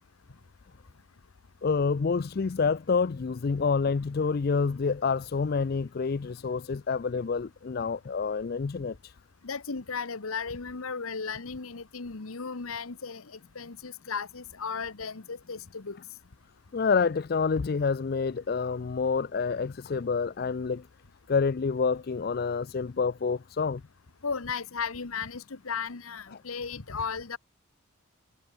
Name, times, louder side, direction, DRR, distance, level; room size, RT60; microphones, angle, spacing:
voice 1, 1.6-9.1 16.7-20.9 21.3-23.8, left 5 dB, 45° left, 0.4 m, -28 dB
voice 2, 9.4-16.0 24.2-27.4, left 5 dB, 80° left, 1.1 m, -35 dB
head